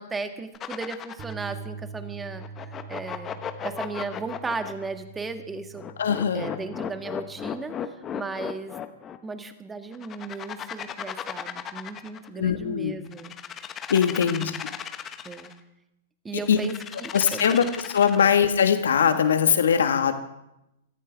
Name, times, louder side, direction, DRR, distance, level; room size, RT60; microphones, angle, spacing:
voice 1, 0.0-2.4 2.9-3.4 3.6-5.8 6.3-7.7 8.1-8.7 9.2-13.7 14.2-14.5 15.2-15.5 16.2-17.6 18.1-18.3, right 4 dB, 15° right, 8 dB, 1.7 m, -36 dB
sound 1, 0.5-1.4 2.4-4.9 5.7-9.2 9.9-12.3 13.1-15.5 16.5-18.4, left 9 dB, 25° left, 1.2 m, -35 dB
Bass guitar, 1.2-7.4, right 6 dB, 30° right, 3.3 m, -43 dB
voice 2, 6.0-6.5 12.4-13.0 13.9-14.5 16.5-16.6 17.1-17.6 17.9-20.1, left 7 dB, 70° left, 8 dB, 1.6 m, -21 dB
26.0 x 14.0 x 3.6 m, 0.88 s
figure-of-eight pair, 110°, 0 cm